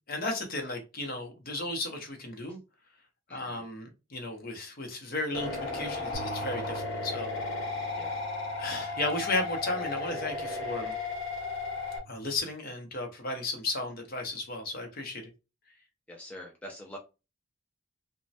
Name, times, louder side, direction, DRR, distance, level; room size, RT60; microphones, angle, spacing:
voice 1, 0.1-2.6 3.3-7.3 8.6-10.9 12.1-15.3, left 2 dB, 45° left, 0.7 m, -34 dB
voice 2, 3.3-3.6 8.0-8.1 8.7-8.9 16.1-17.0, equal, 5° left, 0.4 m, -45 dB
sound 1, 5.3-12.0, left 3 dB, 70° left, 1.0 m, -34 dB
sound 2, 6.1-12.4, right 5 dB, 25° left, 1.1 m, -46 dB
3.0 x 2.2 x 2.6 m
head